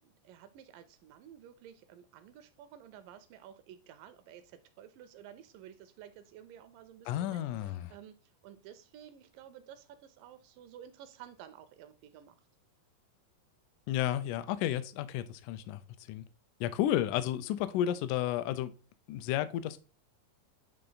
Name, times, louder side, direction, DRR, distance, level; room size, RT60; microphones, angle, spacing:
voice 1, 0.0-12.4, right 10 dB, 80° right, 2.1 m, -53 dB
voice 2, 7.1-7.9 13.9-15.8 16.1-16.3 16.6-18.7 19.1-19.8, left 12 dB, 80° left, 1.8 m, -32 dB
8.7 x 3.3 x 3.9 m
omnidirectional pair, 4.1 m